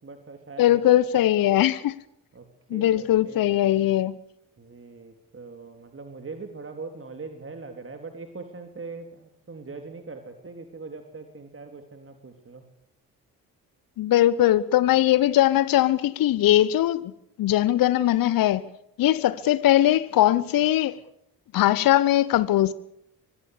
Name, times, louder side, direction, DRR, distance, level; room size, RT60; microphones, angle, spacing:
voice 1, 0.0-0.8 1.2-1.3 2.3-3.9 4.6-12.6, right 4 dB, 30° right, 3.5 m, -41 dB
voice 2, 0.6-1.9 2.7-4.2 14.0-17.1 17.4-18.7 19.0-21.0 21.5-22.7, left 13 dB, 50° left, 1.0 m, -20 dB
24.5 x 21.5 x 6.8 m
figure-of-eight pair, 45°, 43 cm